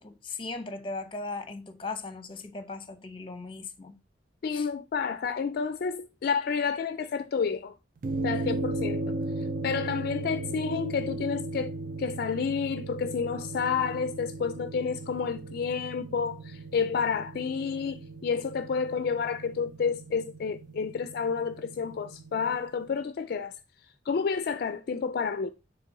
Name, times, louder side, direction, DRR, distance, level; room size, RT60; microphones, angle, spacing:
voice 1, 0.0-4.0 4.5-4.7, left 3 dB, 30° left, 0.8 m, -38 dB
voice 2, 4.4-7.7 8.2-9.0 9.6-11.7 12.0-23.5 24.1-25.5, left 6 dB, 55° left, 0.4 m, -30 dB
sound 1, 8.0-22.6, right 2 dB, 50° right, 0.5 m, -36 dB
6.8 x 3.2 x 4.6 m
head